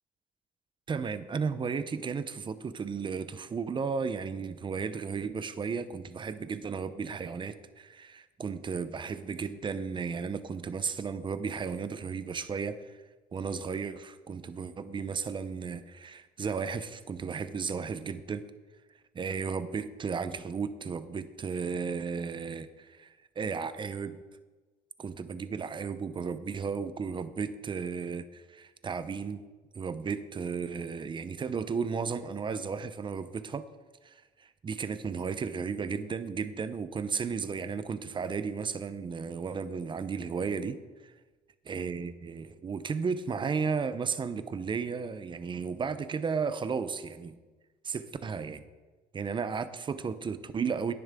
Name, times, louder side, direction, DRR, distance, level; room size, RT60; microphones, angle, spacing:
voice 1, 0.9-13.0 13.3-18.4 19.1-24.2 25.0-29.4 29.7-33.7 34.0-41.1 41.7-47.4 47.8-48.6 49.1-50.9, right 5 dB, 30° right, 12 dB, 0.7 m, -34 dB
10.5 x 10.0 x 3.6 m, 1.3 s
cardioid pair, 110°, 17 cm